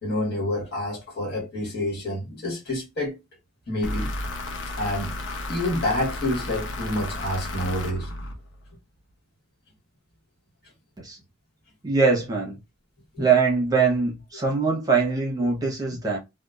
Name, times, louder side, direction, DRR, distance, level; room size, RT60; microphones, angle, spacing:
voice 1, 0.0-3.2 3.7-4.1 4.8-5.2 5.5-8.1 13.2-13.3, left 1 dB, 55° left, 1.4 m, -28 dB
sound 1, 3.8-8.8, left 1 dB, 75° left, 0.6 m, -33 dB
voice 2, 11.8-12.6 13.2-16.2, right 5 dB, 20° right, 0.8 m, -22 dB
2.9 x 2.2 x 2.3 m
head